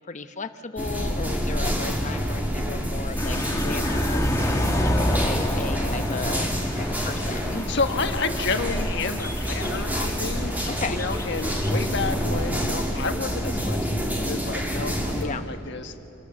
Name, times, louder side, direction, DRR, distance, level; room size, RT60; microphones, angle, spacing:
voice 1, 0.1-3.4 3.6-4.3 5.2-7.7 10.7-11.0 15.2-15.5, left 4 dB, 35° left, 9 dB, 0.9 m, -35 dB
sound 1, 0.8-15.2, equal, 10° right, 2.5 m, -28 dB
sound 2, 3.2-12.5, left 1 dB, 15° left, 1.5 m, -29 dB
voice 2, 7.6-15.9, left 4 dB, 60° left, 6 dB, 1.4 m, -30 dB
27.5 x 19.5 x 7.2 m, 2.8 s
head